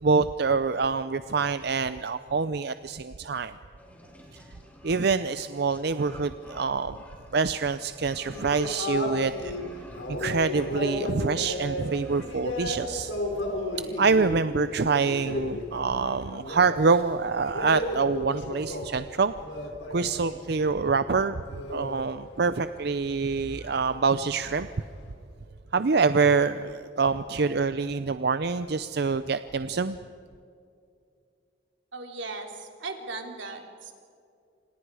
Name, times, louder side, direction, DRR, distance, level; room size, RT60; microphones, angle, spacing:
voice 1, 0.0-3.5 4.8-7.0 7.3-9.5 10.1-13.1 14.0-19.3 19.9-21.4 21.7-24.7 25.7-30.0, right 4 dB, 60° right, 12 dB, 0.6 m, -26 dB
sound 1, 3.8-13.2, left 1 dB, 10° left, 3.6 m, -51 dB
sound 2, 8.3-20.4 20.6-25.1, left 1 dB, 85° left, 5.0 m, -35 dB
voice 2, 31.9-33.9, right 3 dB, 85° right, 3 dB, 3.5 m, -37 dB
28.5 x 26.5 x 4.9 m, 2.5 s
head